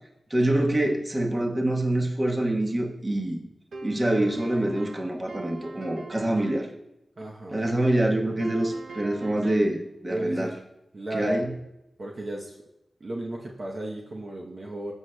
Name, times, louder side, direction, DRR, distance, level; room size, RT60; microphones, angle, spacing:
voice 1, 0.3-3.4 3.8-6.7 7.5-10.5 11.1-11.5, right 1 dB, 25° right, 1 dB, 1.1 m, -25 dB
sound 1, 3.7-6.7 8.4-9.8, right 4 dB, 80° right, 0.7 m, -42 dB
voice 2, 7.2-7.6 10.1-10.6 10.9-11.4 12.0-12.6 13.0-14.9, right 1 dB, 45° right, -2 dB, 0.8 m, -34 dB
15.5 x 6.4 x 2.2 m, 0.88 s
wide cardioid pair, 100°, 0 cm